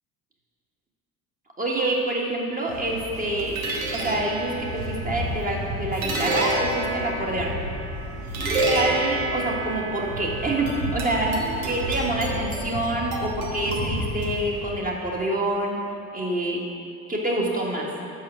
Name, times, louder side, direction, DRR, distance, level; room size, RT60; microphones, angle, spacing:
voice 1, 1.6-3.6 3.9-7.5 8.7-15.7 16.1-16.6 17.1-17.9, right 1 dB, 20° right, -2 dB, 1.4 m, -26 dB
sound 1, 2.7-14.8, right 1 dB, 85° right, 1.2 m, -29 dB
5.6 x 5.6 x 6.3 m, 2.7 s
hypercardioid pair, 60°, 41 cm